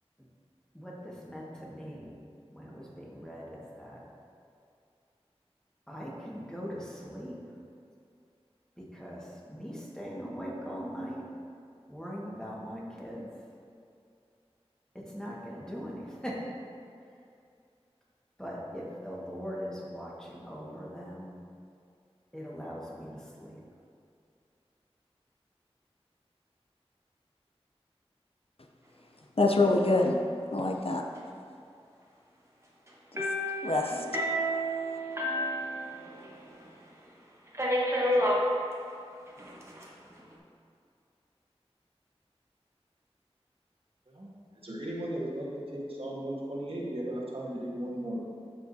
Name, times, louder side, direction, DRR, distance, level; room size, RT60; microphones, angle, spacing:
voice 1, 0.7-2.2 2.5-4.0 5.9-7.4 8.8-11.3 11.9-13.3 14.9-16.5 18.4-21.4 22.3-23.6, equal, 5° left, -5 dB, 1.6 m, -41 dB
voice 2, 29.4-30.2 30.5-31.0 33.1-33.2 33.6-34.2, left 2 dB, 65° left, 1 dB, 0.6 m, -25 dB
sound 1, 33.2-36.4 36.6-36.7 37.5-38.4 39.4-39.8, equal, 25° right, 1.2 m, -30 dB
voice 3, 44.6-48.2, right 1 dB, 60° right, -5 dB, 1.4 m, -36 dB
12.0 x 4.8 x 2.8 m, 2.4 s
wide cardioid pair, 40°, 11 cm